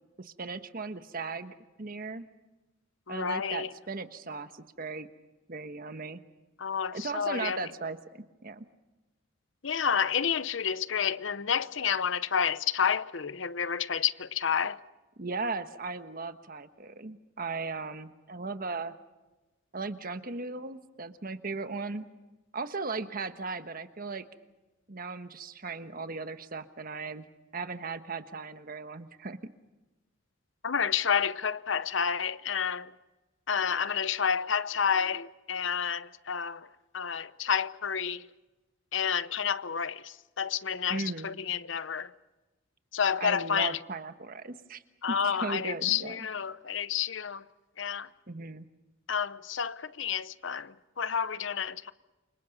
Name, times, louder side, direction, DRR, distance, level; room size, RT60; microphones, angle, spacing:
voice 1, 0.2-2.3 3.1-5.1 5.5-6.2 6.9-8.7 15.2-18.9 19.7-22.1 22.5-24.3 24.9-27.2 27.5-29.5 40.9-41.3 43.2-44.8 45.1-46.2 48.3-48.7, right 3 dB, 45° right, 1.3 m, -37 dB
voice 2, 3.1-3.7 6.6-7.7 9.6-14.8 30.6-32.9 33.5-36.7 36.9-38.3 38.9-42.1 42.9-43.8 45.0-47.5 47.8-48.1 49.1-51.9, left 7 dB, 70° left, 0.8 m, -30 dB
29.0 x 25.5 x 5.4 m
head